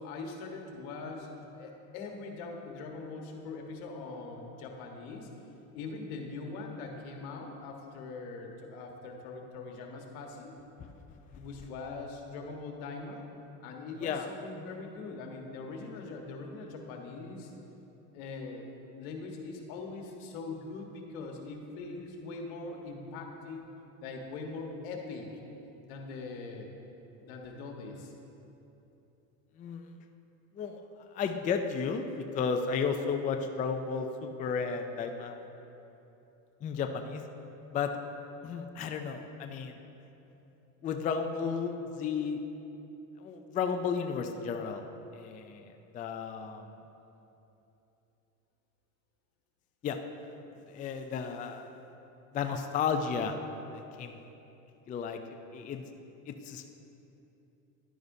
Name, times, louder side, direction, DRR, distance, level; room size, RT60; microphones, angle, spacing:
voice 1, 0.0-5.3 5.7-10.5 11.3-13.3 13.6-17.5 18.1-18.7 19.0-23.7 24.0-25.3 25.8-26.7 27.2-28.1, left 3 dB, 80° left, 2 dB, 1.3 m, -42 dB
voice 2, 29.6-29.9 30.6-30.8 31.1-35.4 36.6-37.2 37.7-37.9 38.4-39.7 40.8-42.4 43.2-44.9 45.1-46.7 49.8-50.0 50.7-51.8 52.3-53.4 53.7-54.3 54.9-55.2 55.5-55.8 56.3-56.7, left 6 dB, 20° left, 6 dB, 0.3 m, -33 dB
11.0 x 9.3 x 2.7 m, 3.0 s
supercardioid pair, 115°, 41 cm